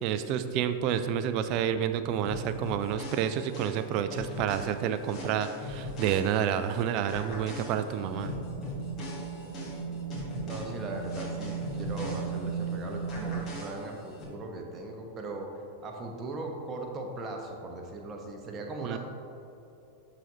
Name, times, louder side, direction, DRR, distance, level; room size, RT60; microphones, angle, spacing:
voice 1, 0.0-8.3 18.8-19.0, right 9 dB, 40° right, 11 dB, 0.4 m, -29 dB
sound 1, 2.2-6.7 7.1-12.7 13.1-14.2, left 2 dB, 30° left, 1.5 m, -41 dB
sound 2, 8.0-13.4, right 5 dB, 60° right, 0.7 m, -36 dB
voice 2, 10.4-19.0, right 2 dB, 25° right, 2 dB, 1.0 m, -39 dB
12.0 x 4.0 x 2.9 m, 2.8 s
figure-of-eight pair, 90°, 0 cm